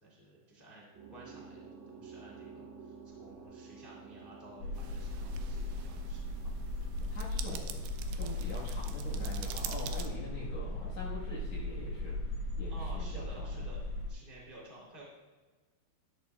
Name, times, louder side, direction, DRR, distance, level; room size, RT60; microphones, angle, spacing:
voice 1, 0.0-1.7 2.0-6.7 12.7-13.8 14.1-15.0, right 1 dB, 85° left, -5 dB, 0.4 m, -53 dB
sound 1, 0.9-14.5, right 4 dB, 60° right, 2.5 m, -55 dB
sound 2, 4.6-14.1, left 2 dB, 45° left, 2.2 m, -37 dB
sound 3, 4.7-10.1, right 10 dB, 85° right, 2.3 m, -46 dB
voice 2, 7.1-12.2 12.6-13.6, left 1 dB, 70° left, -6 dB, 1.6 m, -44 dB
13.0 x 11.5 x 2.3 m, 1.3 s
omnidirectional pair, 5.4 m